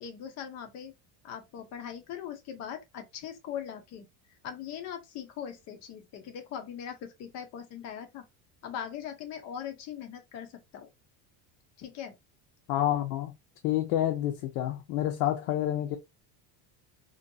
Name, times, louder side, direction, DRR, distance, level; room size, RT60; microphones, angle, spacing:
voice 1, 0.0-0.9 1.2-4.1 4.4-8.2 8.6-10.9 11.8-12.1, left 9 dB, 35° left, 0.4 m, -40 dB
voice 2, 12.7-13.3 13.6-16.0, left 12 dB, 75° left, 0.7 m, -28 dB
2.6 x 2.2 x 2.5 m
cardioid pair, 175°, 48 cm